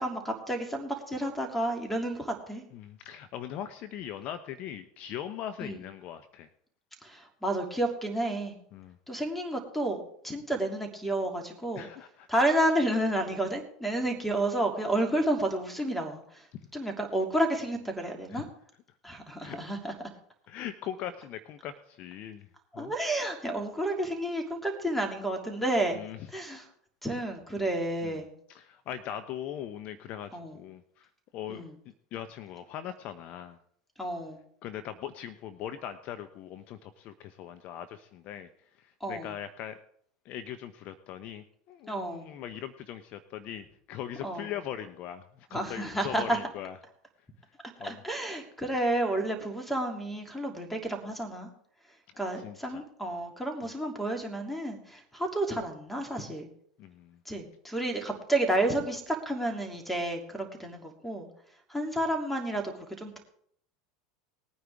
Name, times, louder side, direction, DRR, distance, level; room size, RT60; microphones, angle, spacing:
voice 1, 0.0-2.6 5.6-5.8 7.0-8.5 9.1-11.9 12.3-16.4 16.7-18.4 19.0-19.9 22.7-26.0 26.3-26.6 27.0-28.3 30.3-30.5 31.5-31.7 34.0-34.4 39.0-39.3 41.9-42.3 44.2-44.5 45.5-46.4 47.8-51.5 52.2-56.5 57.2-61.3 61.7-63.2, right 1 dB, 5° left, 4 dB, 2.9 m, -31 dB
voice 2, 2.7-6.5 8.7-9.2 11.8-12.3 16.5-16.7 18.3-18.5 19.4-20.0 20.5-22.5 22.7-22.9 25.9-26.3 28.0-28.2 28.5-33.6 34.6-39.8 40.2-46.8 47.4-47.5 47.8-48.0 52.1-52.8 53.6-53.7 56.8-57.2, left 10 dB, 50° left, 10 dB, 0.8 m, -41 dB
20.0 x 9.5 x 3.6 m, 0.65 s
hypercardioid pair, 85°, 3 cm